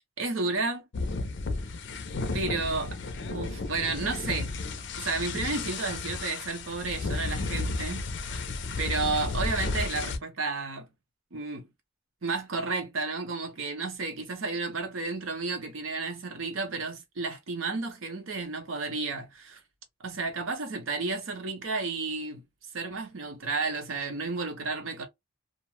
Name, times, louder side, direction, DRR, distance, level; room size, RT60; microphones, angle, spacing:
voice 1, 0.2-0.8 2.3-3.0 3.3-4.5 5.0-8.4 8.8-10.9 11.3-11.7 12.2-19.6 20.0-22.4 22.7-25.1, right 3 dB, 70° right, 0.7 m, -32 dB
sound 1, 0.9-10.2, left 3 dB, 55° left, 0.4 m, -33 dB
2.5 x 2.1 x 3.0 m
head